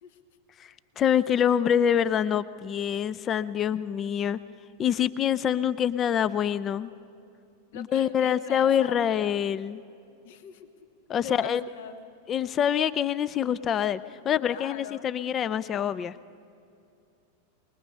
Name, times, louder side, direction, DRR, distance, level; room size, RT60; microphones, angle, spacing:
voice 1, 0.6-4.4 4.8-6.9 7.7-9.8 11.1-11.6 12.3-16.2, left 9 dB, 25° left, 17 dB, 0.5 m, -26 dB
voice 2, 7.7-9.4 10.2-10.7 11.2-12.1 14.5-15.0, left 8 dB, 50° left, 9 dB, 1.2 m, -42 dB
23.0 x 20.5 x 5.5 m, 2.5 s
figure-of-eight pair, 90°, 0 cm